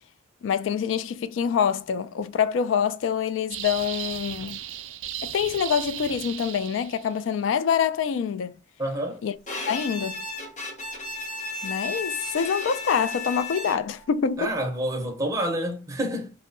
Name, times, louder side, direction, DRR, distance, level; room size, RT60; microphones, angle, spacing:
voice 1, 0.4-4.6 5.2-8.5 9.2-9.3 9.7-10.2 11.6-14.5, left 7 dB, 85° left, 0.3 m, -26 dB
sound 1, 3.5-7.2, right 11 dB, 80° right, 0.3 m, -36 dB
voice 2, 8.8-9.2 14.4-16.3, right 1 dB, 15° right, 0.5 m, -28 dB
Bowed string instrument, 9.5-14.1, left 2 dB, 40° left, 0.6 m, -34 dB
2.6 x 2.1 x 2.5 m
head